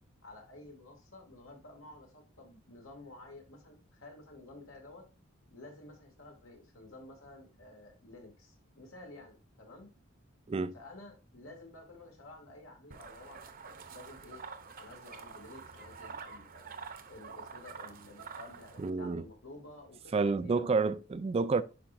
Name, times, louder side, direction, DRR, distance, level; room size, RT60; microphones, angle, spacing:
voice 1, 0.2-5.0 5.5-9.9 10.7-14.4 14.8-16.7 17.1-20.7, left 2 dB, 90° left, 2.5 m, -52 dB
sound 1, 12.9-18.9, right 5 dB, 45° right, 0.7 m, -47 dB
voice 2, 18.8-19.2 20.1-21.6, right 4 dB, 30° right, 0.3 m, -29 dB
10.0 x 4.9 x 2.6 m
head